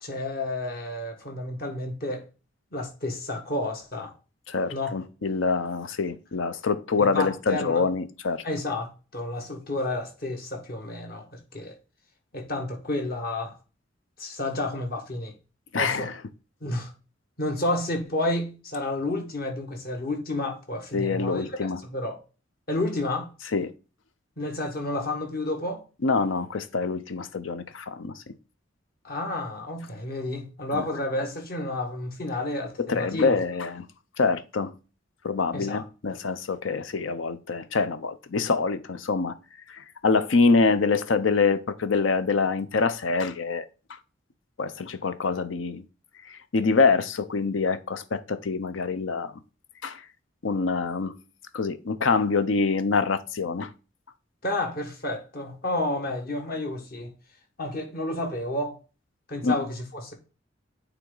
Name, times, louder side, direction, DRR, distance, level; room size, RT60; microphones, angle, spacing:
voice 1, 0.0-2.2 2.7-4.1 4.7-4.9 7.0-7.8 8.4-11.7 12.3-13.5 14.2-15.3 15.7-16.1 16.6-16.9 17.4-21.6 21.8-22.2 22.7-23.3 24.4-25.8 29.0-33.4 35.5-35.8 54.4-57.1 57.6-58.7 59.3-60.1, left 2 dB, 50° left, 1.7 m, -30 dB
voice 2, 4.5-8.4 15.7-16.1 20.9-21.8 23.5-23.7 26.0-28.3 30.7-30.8 32.8-33.8 34.2-34.7 35.2-39.3 39.7-43.6 44.6-45.8 46.3-49.3 49.8-50.0 50.4-51.1 51.5-53.7 59.4-59.5, left 4 dB, 85° left, 0.7 m, -25 dB
8.9 x 3.5 x 3.9 m
head